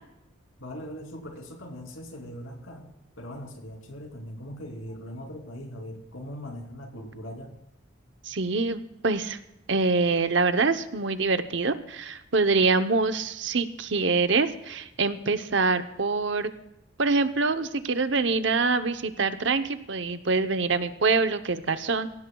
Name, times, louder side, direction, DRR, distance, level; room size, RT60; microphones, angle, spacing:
voice 1, 0.6-2.9 3.2-7.5, equal, 85° left, 2 dB, 3.1 m, -40 dB
voice 2, 8.2-9.4 9.7-16.5 17.0-22.1, right 4 dB, 60° right, 10 dB, 0.8 m, -25 dB
23.0 x 17.5 x 2.3 m, 0.87 s
head